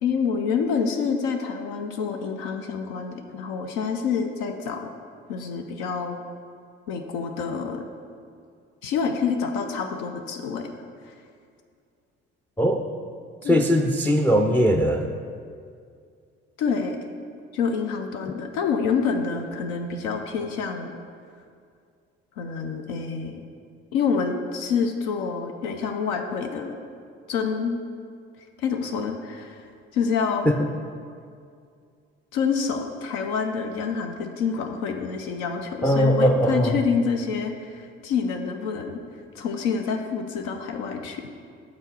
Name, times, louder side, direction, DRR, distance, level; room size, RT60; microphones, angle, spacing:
voice 1, 0.0-4.9 5.3-6.2 6.9-7.9 8.8-10.7 11.0-11.1 13.4-13.7 16.6-17.0 17.5-20.9 22.4-23.4 23.9-26.8 27.3-27.8 28.6-29.6 29.9-30.5 32.3-39.0 39.3-41.2, left 5 dB, 85° left, 4 dB, 0.5 m, -27 dB
voice 2, 13.4-15.1 30.5-30.7 35.8-36.8, equal, 5° left, 5 dB, 0.3 m, -20 dB
5.4 x 4.0 x 6.1 m, 2.3 s
hypercardioid pair, 55°, 29 cm